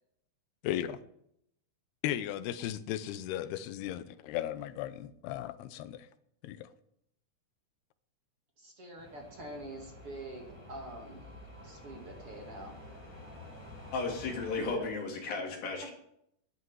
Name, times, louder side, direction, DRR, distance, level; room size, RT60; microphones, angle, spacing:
voice 1, 0.6-1.0 2.0-6.1 6.4-6.7, left 12 dB, 90° left, 13 dB, 2.9 m, -36 dB
voice 2, 8.6-11.3 11.6-12.8 14.7-14.9, right 1 dB, 40° right, 1 dB, 2.9 m, -45 dB
sound 1, 9.0-14.7, left 1 dB, 20° left, 6.9 m, -49 dB
voice 3, 13.9-15.9, left 4 dB, 65° left, 1 dB, 4.8 m, -34 dB
11.5 x 11.0 x 9.5 m, 0.75 s
omnidirectional pair, 4.5 m